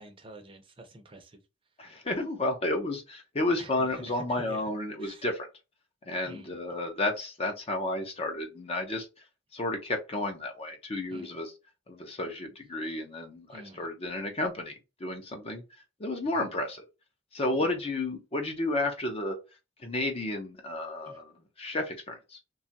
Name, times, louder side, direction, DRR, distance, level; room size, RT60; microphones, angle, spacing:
voice 1, 0.0-1.4 3.6-4.7 5.0-5.3 6.2-6.6 11.1-11.4 13.5-13.9 16.2-16.5 17.5-17.8 21.0-21.2, right 1 dB, 25° right, 0.6 m, -48 dB
voice 2, 1.8-5.5 6.1-9.1 9.5-11.5 11.9-13.5 13.7-15.6 16.0-16.8 17.3-19.4 19.8-21.3 21.6-22.4, left 2 dB, 30° left, 0.5 m, -32 dB
2.9 x 2.3 x 2.7 m
head